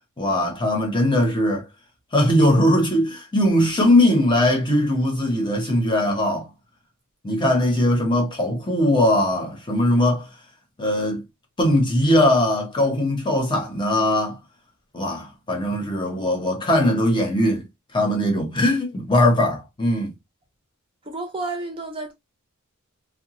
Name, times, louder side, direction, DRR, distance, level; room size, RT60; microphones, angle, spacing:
voice 1, 0.2-1.7 2.1-6.5 7.2-10.3 10.8-11.2 11.6-14.4 14.9-17.7 17.9-20.1, left 1 dB, 20° left, 0.8 m, -20 dB
voice 2, 21.1-22.1, right 2 dB, 25° right, 0.6 m, -30 dB
2.7 x 2.2 x 2.9 m
head